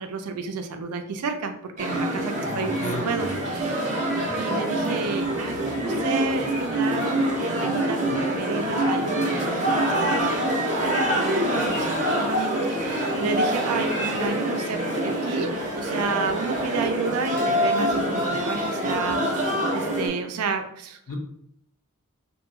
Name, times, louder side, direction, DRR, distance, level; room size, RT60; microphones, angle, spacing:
voice 1, 0.0-4.1 4.4-8.0 8.4-15.5 15.8-21.2, right 4 dB, 85° right, 6 dB, 0.4 m, -31 dB
sound 1, 1.8-20.1, right 1 dB, 35° right, 0.7 m, -25 dB
voice 2, 2.5-3.1 21.1-21.2, left 1 dB, 70° left, 1 dB, 0.7 m, -33 dB
2.6 x 2.3 x 2.8 m, 0.72 s
head